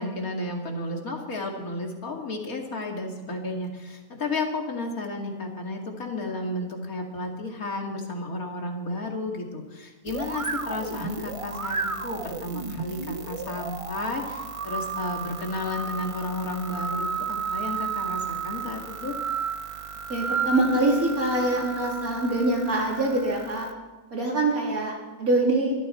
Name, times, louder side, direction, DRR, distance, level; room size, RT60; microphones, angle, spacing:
voice 1, 0.0-19.1, left 2 dB, 90° left, 1 dB, 2.8 m, -32 dB
sound 1, 10.1-23.7, right 5 dB, 30° right, 0.7 m, -33 dB
voice 2, 20.1-23.7 24.1-25.7, right 2 dB, 85° right, -2 dB, 4.1 m, -24 dB
22.5 x 13.5 x 4.4 m, 1.2 s
omnidirectional pair, 1.5 m